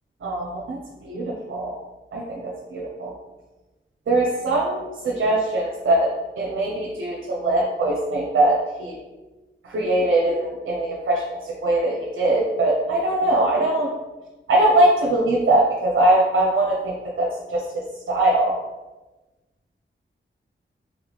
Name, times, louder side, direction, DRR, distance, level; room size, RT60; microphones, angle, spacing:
voice 1, 0.2-1.8 2.1-3.1 4.1-6.1 6.4-9.0 9.6-13.9 14.5-18.6, right 1 dB, 80° right, -2 dB, 0.6 m, -22 dB
3.5 x 3.1 x 4.0 m, 1.2 s
wide cardioid pair, 90°, 20 cm